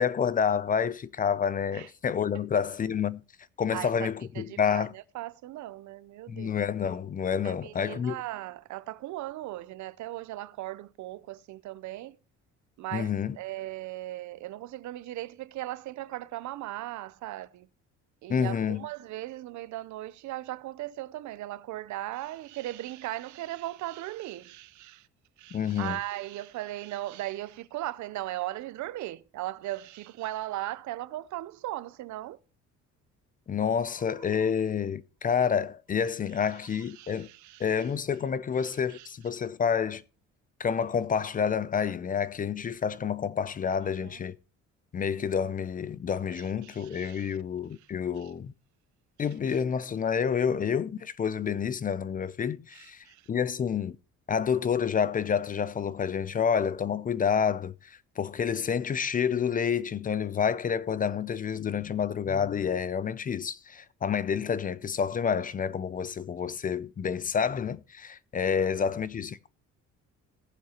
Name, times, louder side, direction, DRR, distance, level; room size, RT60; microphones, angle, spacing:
voice 1, 0.0-3.2 3.6-4.9 6.3-8.2 12.9-13.4 18.3-18.9 25.5-26.0 33.5-37.3 37.6-40.0 40.6-44.4 44.9-48.5 49.2-54.0 54.3-69.5, left 7 dB, 30° left, 0.4 m, -29 dB
voice 2, 3.7-4.1 4.3-6.6 7.4-12.2 12.8-17.7 18.2-25.1 25.4-32.4 34.4-34.5 36.5-37.9 38.6-39.1 43.8-44.2 46.3-47.4 48.2-48.3 49.5-49.6 52.7-53.3 68.5-68.9, right 15 dB, 75° right, 0.6 m, -38 dB
18.5 x 7.4 x 2.9 m
cardioid pair, 130°, 29 cm